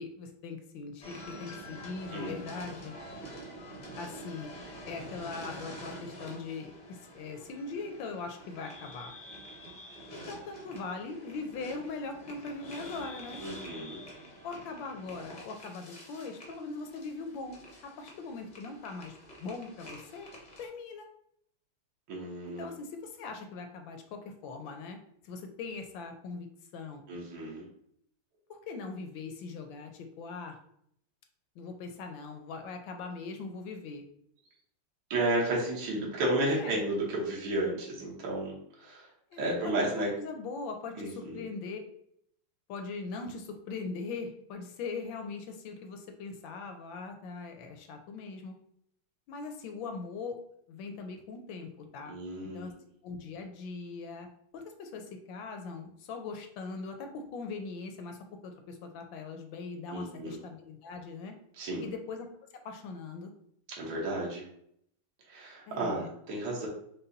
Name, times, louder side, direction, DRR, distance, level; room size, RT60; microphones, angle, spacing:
voice 1, 0.0-2.9 4.0-4.5 4.9-9.1 10.1-13.4 14.4-20.3 20.6-21.1 22.4-25.0 25.2-26.5 26.7-27.0 28.7-30.6 31.6-34.0 36.4-36.8 39.3-41.8 42.7-48.5 49.3-50.4 50.7-52.1 52.4-52.7 53.0-54.3 54.5-61.3 61.8-62.3 62.5-63.3 65.7-66.1, left 4 dB, 75° left, 5 dB, 1.2 m, -41 dB
sound 1, 1.0-20.7, equal, 45° left, 0.5 m, -47 dB
voice 2, 13.4-14.0 22.1-22.7 27.1-27.7 35.1-39.1 39.4-40.1 41.0-41.4 52.1-52.7 59.9-60.4 61.6-61.9 63.7-64.4 65.3-66.7, right 1 dB, 65° right, -3 dB, 1.9 m, -32 dB
5.4 x 2.2 x 3.8 m, 0.69 s
omnidirectional pair, 2.4 m